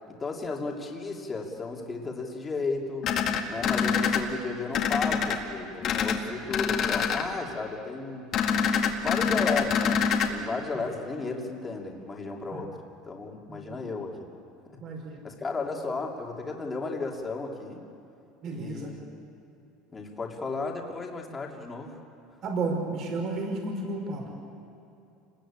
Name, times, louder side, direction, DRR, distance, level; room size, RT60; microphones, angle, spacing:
voice 1, 0.1-3.1 3.5-8.2 9.0-12.7 13.0-14.3 15.2-17.8 18.5-19.0 19.9-22.0, left 3 dB, 15° left, 0 dB, 2.8 m, -34 dB
sound 1, 3.0-4.2 4.7-5.4 5.8-6.2 6.5-7.2 8.3-10.3, left 7 dB, 35° left, 2.0 m, -25 dB
voice 2, 13.5-13.8 14.8-15.3 18.4-18.9 22.4-24.3, right 3 dB, 40° right, 2 dB, 5.2 m, -32 dB
28.5 x 20.5 x 8.8 m, 2.7 s
cardioid pair, 160°, 0 cm